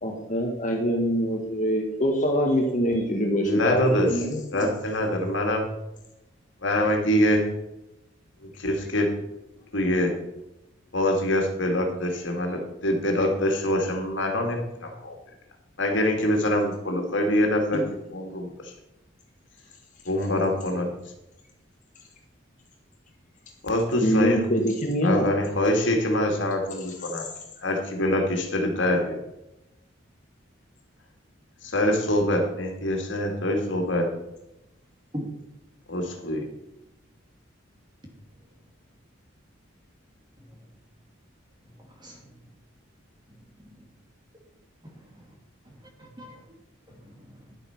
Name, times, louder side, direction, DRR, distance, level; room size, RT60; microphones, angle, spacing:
voice 1, 0.0-4.7 17.7-17.9 24.0-25.3, equal, 40° left, 2 dB, 1.6 m, -24 dB
voice 2, 3.4-4.1 4.5-5.6 6.6-7.4 8.4-9.1 9.7-10.1 10.9-15.2 15.8-17.8 18.1-18.7 20.0-20.9 23.6-24.4 25.0-27.3 27.6-29.2 31.6-34.1 35.9-36.4, left 1 dB, 65° left, 3 dB, 2.4 m, -24 dB
voice 3, 41.8-42.2 44.8-45.3 45.6-45.7 46.2-46.3 46.9-47.5, equal, 20° right, 1 dB, 2.8 m, -40 dB
11.5 x 8.3 x 5.9 m, 0.91 s
head